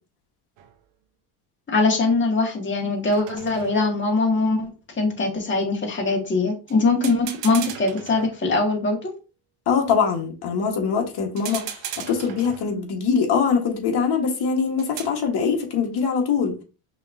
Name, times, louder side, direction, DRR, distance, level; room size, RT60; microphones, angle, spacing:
sound 1, 0.6-0.8 3.1-4.1 6.7-6.8 7.0-8.8 11.4-12.9 14.8-15.3, right 9 dB, 60° right, 1.0 m, -37 dB
voice 1, 1.7-4.7 5.0-9.1, left 3 dB, 25° left, 1.9 m, -22 dB
voice 2, 9.7-11.6 12.1-16.5, left 6 dB, 50° left, 1.7 m, -22 dB
5.6 x 3.2 x 2.8 m
cardioid pair, 115°, 49 cm